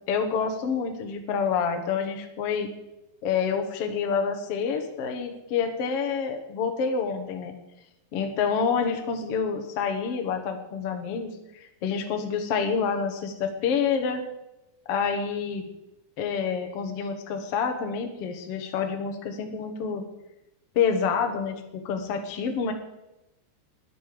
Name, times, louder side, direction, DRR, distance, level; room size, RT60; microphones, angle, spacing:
voice 1, 0.1-2.7 3.2-7.5 8.1-14.2 14.9-15.6 16.2-20.0 20.7-22.7, left 6 dB, 85° left, 5 dB, 1.3 m, -28 dB
22.0 x 7.8 x 5.1 m, 0.92 s
omnidirectional pair, 5.0 m